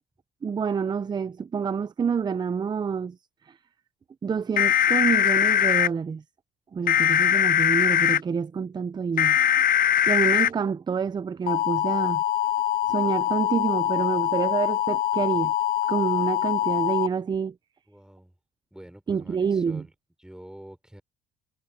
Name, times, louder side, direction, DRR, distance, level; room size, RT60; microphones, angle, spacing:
voice 1, 0.4-3.2 3.4-3.6 4.2-6.2 6.7-9.5 10.1-12.2 12.9-15.5 15.9-17.6 19.1-19.8, right 6 dB, 25° right, 0.5 m, -27 dB
sound 1, 4.6-5.9 6.9-8.2 9.2-10.5 11.5-17.1, left 10 dB, 55° left, 0.8 m, -22 dB
voice 2, 17.9-18.4 18.7-19.9 20.2-21.0, right 1 dB, 5° right, 5.9 m, -46 dB
cardioid pair, 110°, 17 cm